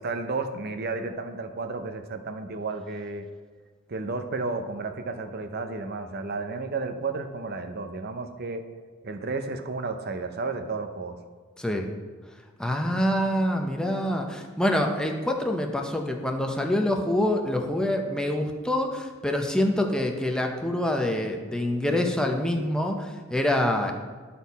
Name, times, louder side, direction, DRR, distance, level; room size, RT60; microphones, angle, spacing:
voice 1, 0.0-3.3 3.9-8.6 9.0-11.2, right 3 dB, 50° right, 7 dB, 0.6 m, -32 dB
voice 2, 11.6-11.9 12.6-23.9, left 1 dB, 5° left, 2 dB, 0.6 m, -26 dB
11.5 x 4.3 x 4.1 m, 1.5 s
head